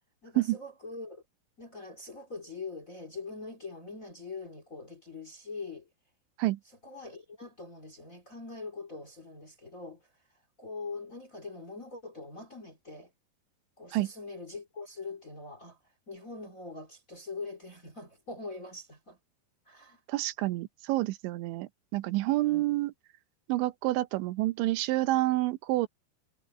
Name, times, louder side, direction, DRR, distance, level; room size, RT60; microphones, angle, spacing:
voice 1, 0.2-1.2 1.6-5.9 6.8-10.1 10.6-13.1 13.8-15.8 16.1-19.2 19.7-20.0 22.4-22.8, left 3 dB, 25° left, 2.1 m, -43 dB
voice 2, 20.1-22.9 23.5-25.9, right 18 dB, 85° right, 3.2 m, -28 dB
omnidirectional pair, 5.2 m